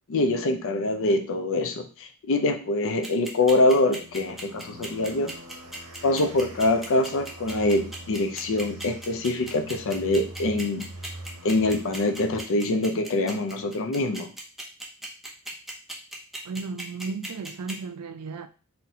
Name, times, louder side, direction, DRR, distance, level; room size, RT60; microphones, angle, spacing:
voice 1, 0.1-5.3 6.0-10.9 11.4-14.3, left 2 dB, 60° left, 0.5 m, -24 dB
sound 1, 3.0-17.7, right 1 dB, ahead, 0.6 m, -37 dB
sound 2, 3.3-12.4, right 1 dB, 65° right, 0.8 m, -44 dB
voice 2, 16.5-18.5, right 4 dB, 85° right, 0.4 m, -34 dB
4.0 x 2.2 x 2.7 m
head